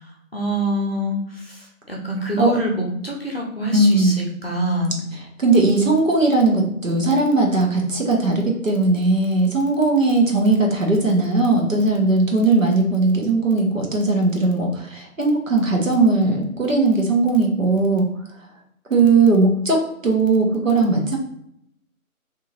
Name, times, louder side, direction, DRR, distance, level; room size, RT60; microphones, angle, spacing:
voice 1, 0.3-1.6 1.9-5.0, equal, 45° left, -1 dB, 0.6 m, -25 dB
voice 2, 3.7-4.2 5.1-18.1 18.9-21.2, right 3 dB, 65° right, 0 dB, 1.0 m, -18 dB
2.7 x 2.4 x 3.0 m, 0.72 s
figure-of-eight pair, 175°, 43 cm